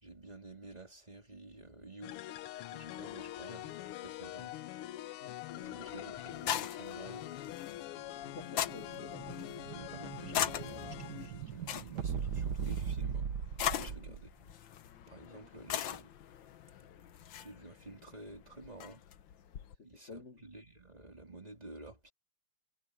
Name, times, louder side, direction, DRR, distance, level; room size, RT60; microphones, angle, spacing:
voice 1, 0.0-2.3 2.7-4.6 5.7-7.6 9.7-14.5 15.1-16.1 17.4-19.0 19.8-22.1, right 2 dB, 15° right, 3.5 m, -51 dB
sound 1, 2.0-11.5, left 14 dB, 85° left, 1.6 m, -44 dB
voice 2, 5.2-6.2 8.1-9.7 13.7-14.2 15.3-15.6 19.7-20.4, left 3 dB, 35° left, 1.8 m, -52 dB
sound 2, 5.6-19.8, left 10 dB, 65° left, 1.6 m, -41 dB
Explosion, 8.2-14.3, right 7 dB, 55° right, 1.6 m, -39 dB
omnidirectional pair, 2.4 m